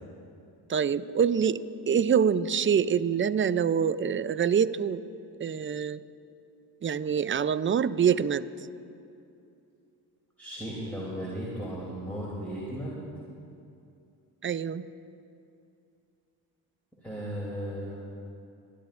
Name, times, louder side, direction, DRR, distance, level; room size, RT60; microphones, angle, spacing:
voice 1, 0.7-5.0 5.4-6.0 6.8-8.5 14.4-14.8, right 7 dB, 30° right, 14 dB, 0.5 m, -25 dB
voice 2, 10.4-13.0 17.0-18.0, equal, 5° left, -7 dB, 3.1 m, -36 dB
25.5 x 10.5 x 2.6 m, 2.5 s
supercardioid pair, 50°, 43 cm